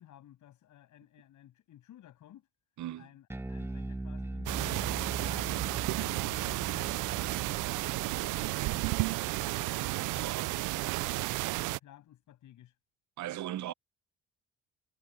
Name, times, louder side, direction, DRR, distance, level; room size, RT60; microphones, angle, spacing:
voice 1, 0.0-2.5 3.0-4.7 5.2-10.6 11.0-12.8, left 12 dB, 75° left, 7.8 m, -56 dB
voice 2, 2.8-3.1 10.1-10.5 13.2-13.7, right 13 dB, 70° right, 0.9 m, -38 dB
Bass guitar, 3.3-9.7, right 1 dB, 10° right, 1.2 m, -41 dB
sound 1, 4.5-11.8, right 20 dB, 90° right, 0.5 m, -32 dB
cardioid pair, 90°, 30 cm